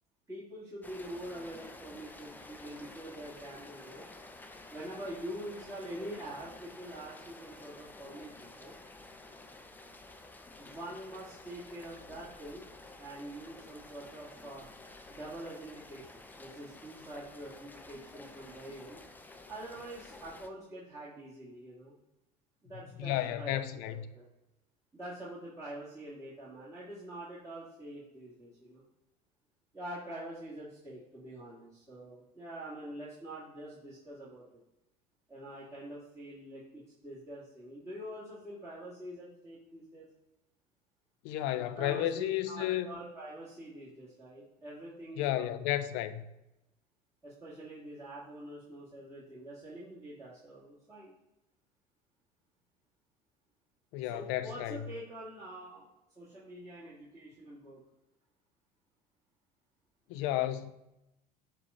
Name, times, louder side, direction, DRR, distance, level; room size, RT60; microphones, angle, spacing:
voice 1, 0.3-4.0 4.7-8.7 10.6-12.6 13.0-14.6 15.1-19.0 19.5-22.0 22.6-24.3 24.9-28.8 29.7-34.6 35.3-40.1 41.7-45.7 47.2-51.1 54.0-55.9 56.2-57.8, right 1 dB, 15° right, 1.9 m, -45 dB
Rain, 0.8-20.5, left 2 dB, 10° left, 0.5 m, -51 dB
voice 2, 23.0-24.1 41.2-42.9 45.2-46.2 53.9-54.8 60.1-60.7, left 13 dB, 60° left, 0.5 m, -32 dB
7.2 x 2.5 x 5.4 m
hypercardioid pair, 75°, 21 cm